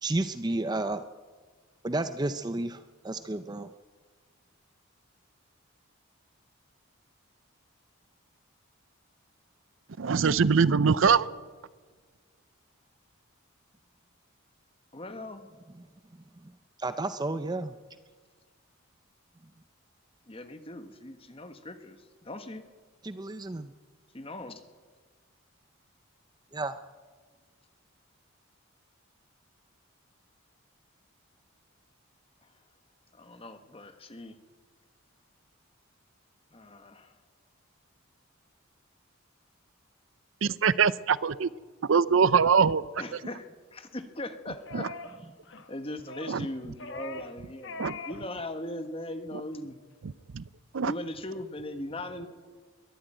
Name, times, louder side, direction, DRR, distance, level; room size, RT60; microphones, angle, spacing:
voice 1, 0.0-1.0 1.8-3.7 16.8-17.8 23.0-23.7 26.5-26.7, right 2 dB, 20° right, 10 dB, 0.5 m, -31 dB
voice 2, 10.0-11.3 40.4-41.5 41.8-42.8 44.7-44.9 46.3-46.4 47.8-48.0 50.3-50.4 50.7-50.9, right 6 dB, 65° right, 18 dB, 0.5 m, -23 dB
voice 3, 14.9-15.4 20.3-22.7 24.1-24.6 33.1-34.4 36.5-37.1 43.0-44.9 45.2-45.3 45.7-49.8 50.8-52.3, left 1 dB, 25° left, 8 dB, 1.4 m, -39 dB
sound 1, 44.7-45.2 45.4-45.7 46.1-46.4 46.8-47.4 47.6-48.2 48.5-48.7, left 3 dB, 55° left, 1.3 m, -41 dB
22.0 x 13.0 x 9.1 m, 1.4 s
head